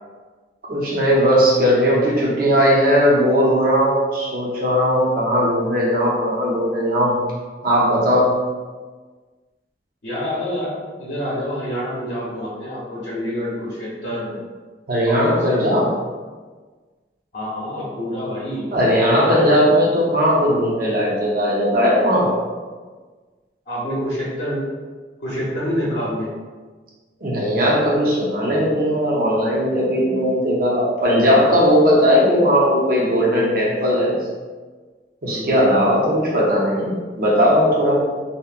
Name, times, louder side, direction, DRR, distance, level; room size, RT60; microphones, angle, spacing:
voice 1, 0.7-7.2 7.6-8.4 14.9-15.9 18.7-22.4 27.2-34.1 35.2-38.0, equal, 50° right, -5 dB, 0.6 m, -18 dB
voice 2, 10.0-14.3 15.1-15.7 17.3-18.7 19.3-19.4 23.7-24.6 25.2-26.3 35.2-35.7, equal, 60° left, -9 dB, 0.7 m, -27 dB
2.7 x 2.1 x 2.4 m, 1.4 s
head